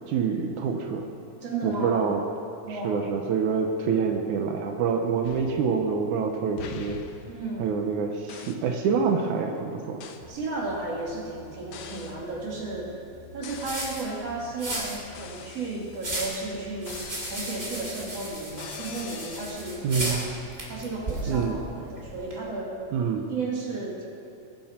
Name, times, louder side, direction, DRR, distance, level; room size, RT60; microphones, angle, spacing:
voice 1, 0.1-1.1 1.6-2.2 2.7-7.0 7.6-10.1 19.8-20.2 21.3-21.6 22.9-23.2, right 6 dB, 85° right, 3 dB, 2.4 m, -26 dB
voice 2, 1.4-2.1 2.6-3.0 7.3-7.7 10.3-12.9 13.3-17.0 17.3-20.3 20.7-22.7 23.3-24.1, right 3 dB, 55° right, -3 dB, 3.5 m, -34 dB
sound 1, 5.2-6.2 6.6-7.9 8.3-8.7 10.0-10.3 11.7-12.2 13.4-14.2 15.1-16.3 16.9-19.5, left 6 dB, 65° left, 1.6 m, -44 dB
sound 2, 10.2-22.4, right 1 dB, 20° right, 3.2 m, -37 dB
22.0 x 11.5 x 4.4 m, 2.9 s
omnidirectional pair, 3.3 m